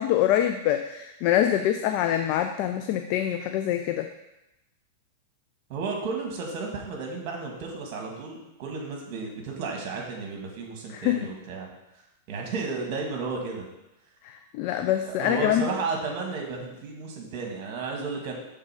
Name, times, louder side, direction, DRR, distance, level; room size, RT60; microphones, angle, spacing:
voice 1, 0.0-4.1 10.9-11.2 14.2-15.6, left 11 dB, 50° left, 6 dB, 0.4 m, -25 dB
voice 2, 5.7-11.7 12.3-13.6 15.0-18.3, right 4 dB, 50° right, 0 dB, 1.9 m, -33 dB
6.6 x 3.7 x 4.9 m, 0.93 s
hypercardioid pair, 105°, 0 cm